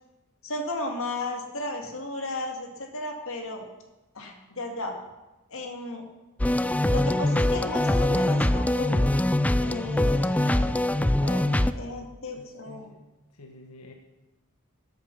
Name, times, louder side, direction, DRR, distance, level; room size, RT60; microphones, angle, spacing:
voice 1, 0.4-3.6 4.1-4.9 5.5-6.1 6.9-9.1 9.6-10.7 11.2-12.9, left 2 dB, 65° left, 3 dB, 2.2 m, -34 dB
sound 1, 6.4-11.7, left 1 dB, 5° left, 0.3 m, -23 dB
voice 2, 12.3-13.1 13.3-13.9, left 3 dB, 90° left, 2 dB, 1.4 m, -47 dB
13.5 x 8.2 x 6.7 m, 1.0 s
head